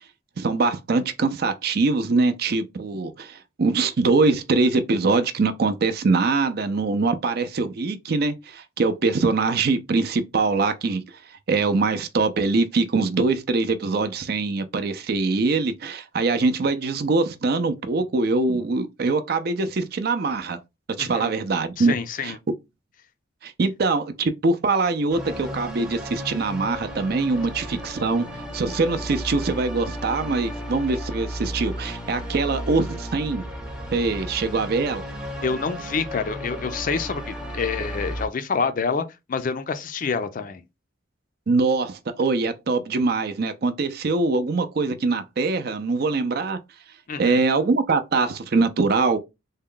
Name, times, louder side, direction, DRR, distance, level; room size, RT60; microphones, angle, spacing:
voice 1, 0.4-11.0 11.5-20.6 20.9-22.0 22.2-22.3 23.4-28.3 28.5-33.5 33.9-35.0 41.5-46.6 47.2-49.2, right 3 dB, 55° right, 0.5 m, -23 dB
voice 2, 21.0-21.3 21.8-22.4 35.4-40.6 47.1-47.4, left 5 dB, 45° left, 0.4 m, -27 dB
sound 1, 25.1-38.3, equal, 5° right, 0.6 m, -34 dB
3.5 x 2.2 x 3.7 m
head